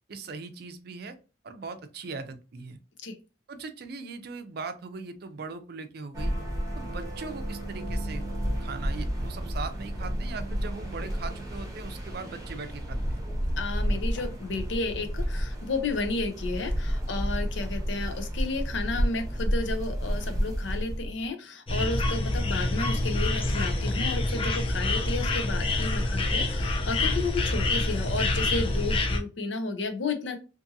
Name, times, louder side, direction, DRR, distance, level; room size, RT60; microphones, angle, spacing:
voice 1, 0.1-1.2 1.4-2.8 3.5-6.3 6.7-8.2 8.6-13.3, right 4 dB, 55° right, 9 dB, 0.4 m, -40 dB
sound 1, 6.1-21.3, equal, 20° right, 0.8 m, -31 dB
voice 2, 13.6-30.4, left 3 dB, 80° left, 7 dB, 0.6 m, -32 dB
sound 2, 21.7-29.2, left 2 dB, 30° left, 0.5 m, -27 dB
2.6 x 2.6 x 2.6 m, 0.33 s
head